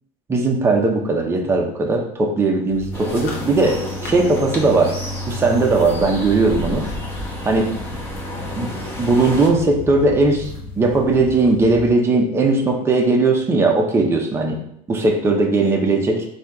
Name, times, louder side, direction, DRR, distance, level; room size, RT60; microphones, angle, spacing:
voice 1, 0.3-5.0 5.3-6.9 7.4-7.7 8.6-14.6 14.9-16.3, right 3 dB, 15° right, 2 dB, 0.7 m, -18 dB
sound 1, 2.7-11.9, left 1 dB, 60° left, 1.0 m, -33 dB
sound 2, 2.9-9.5, equal, 15° left, 0.9 m, -32 dB
3.9 x 2.8 x 4.7 m, 0.72 s
cardioid pair, 160°, 15 cm